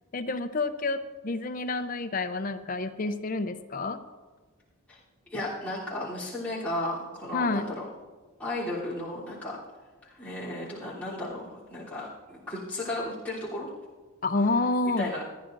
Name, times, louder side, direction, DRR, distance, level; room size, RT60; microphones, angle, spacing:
voice 1, 0.1-4.0 7.3-7.7 14.2-15.1, left 3 dB, 40° left, 9 dB, 0.5 m, -29 dB
voice 2, 5.3-7.8 8.4-9.6 10.0-13.7 15.0-15.3, left 1 dB, 5° left, -10 dB, 3.2 m, -34 dB
28.0 x 10.0 x 2.6 m, 1.3 s
head